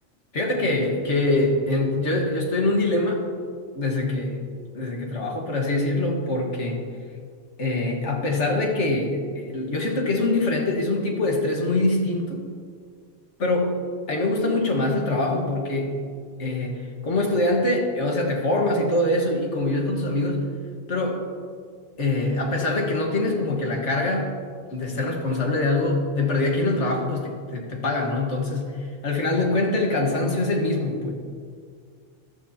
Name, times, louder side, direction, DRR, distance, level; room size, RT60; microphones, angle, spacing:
voice 1, 0.3-3.3 3.7-4.4 4.7-6.8 7.6-12.4 13.4-16.0 16.4-20.5 20.9-21.2 22.0-24.3 24.7-31.1, left 2 dB, 70° left, 1 dB, 1.9 m, -24 dB
14.5 x 12.0 x 2.9 m, 2.1 s
omnidirectional pair, 1.2 m